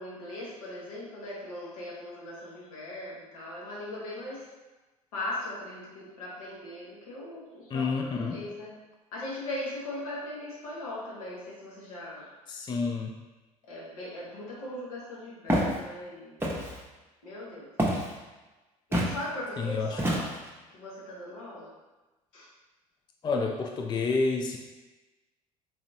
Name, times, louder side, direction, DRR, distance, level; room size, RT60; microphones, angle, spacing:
voice 1, 0.0-4.5 5.1-8.8 9.1-12.3 13.7-16.4 17.2-17.7 18.9-20.3 20.7-21.7 22.3-22.5, left 1 dB, 75° left, -6 dB, 1.3 m, -39 dB
voice 2, 7.7-8.4 12.5-13.1 19.6-20.1 23.2-24.6, left 4 dB, 25° left, 1 dB, 0.4 m, -29 dB
Walk footsteps, 15.5-15.8 16.4-16.8 17.8-18.1 18.9-19.2 20.0-20.5, equal, 10° right, 0.9 m, -27 dB
4.1 x 2.9 x 2.7 m, 1.2 s
hypercardioid pair, 65°, 18 cm